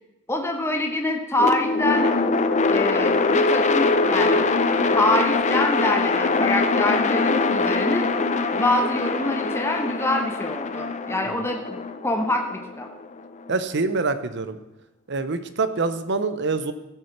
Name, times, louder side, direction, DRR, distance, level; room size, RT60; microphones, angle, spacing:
voice 1, 0.3-2.1 2.7-4.4 4.9-8.1 8.5-12.9, left 1 dB, 10° left, 3 dB, 0.9 m, -25 dB
sound 1, 1.4-13.5, left 3 dB, 35° left, 0.7 m, -23 dB
voice 2, 13.5-14.6 15.1-16.7, right 3 dB, 55° right, 11 dB, 0.8 m, -25 dB
15.5 x 6.3 x 5.9 m, 0.95 s
head